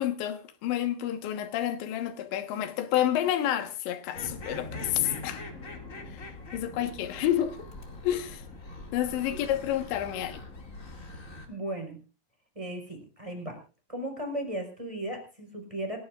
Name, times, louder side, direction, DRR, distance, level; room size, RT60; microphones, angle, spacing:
voice 1, 0.0-5.4 6.1-7.7 8.0-8.4 8.9-10.4, left 11 dB, 75° left, 3.5 m, -29 dB
sound 1, 4.1-11.5, left 2 dB, 35° left, 1.3 m, -42 dB
voice 2, 11.5-12.0 12.5-13.6 13.9-16.0, right 1 dB, 5° right, 3.8 m, -36 dB
27.5 x 11.5 x 2.4 m
omnidirectional pair, 5.4 m